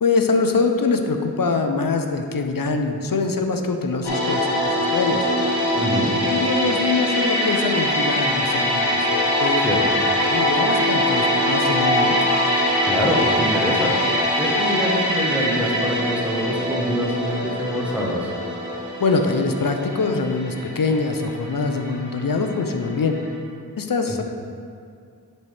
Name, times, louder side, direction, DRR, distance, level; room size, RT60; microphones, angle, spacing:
voice 1, 0.0-5.3 6.2-9.1 9.4-9.6 10.2-12.2 19.0-23.2 23.8-24.2, left 4 dB, 60° left, 5 dB, 0.6 m, -23 dB
sound 1, 4.0-22.9 23.1-23.3, left 1 dB, 80° left, 1.0 m, -22 dB
voice 2, 5.8-6.2 9.6-9.8 12.8-13.9 14.4-18.3 24.1-24.2, equal, 5° right, -3 dB, 1.2 m, -25 dB
10.0 x 4.2 x 3.4 m, 2.3 s
wide cardioid pair, 45°, 39 cm